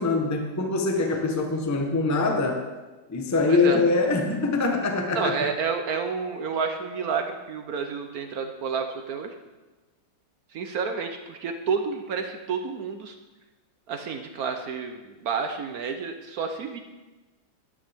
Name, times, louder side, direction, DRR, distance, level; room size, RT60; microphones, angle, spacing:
voice 1, 0.0-2.6 3.1-5.3, left 3 dB, 15° left, 4 dB, 0.5 m, -23 dB
voice 2, 5.1-9.3 10.5-13.1 13.9-16.8, right 5 dB, 65° right, 5 dB, 0.9 m, -30 dB
12.5 x 11.0 x 3.5 m, 1.2 s
omnidirectional pair, 2.2 m